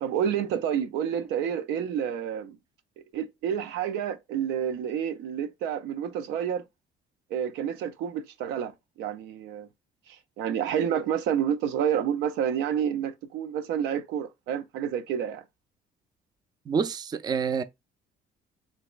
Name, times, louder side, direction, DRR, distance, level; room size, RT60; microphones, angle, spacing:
voice 1, 0.0-2.6 3.1-6.6 7.3-8.7 9.0-9.7 10.4-15.4, right 9 dB, 90° right, 0.5 m, -29 dB
voice 2, 16.7-17.6, right 6 dB, 25° right, 0.3 m, -27 dB
3.4 x 2.9 x 2.3 m
cardioid pair, 110°, 17 cm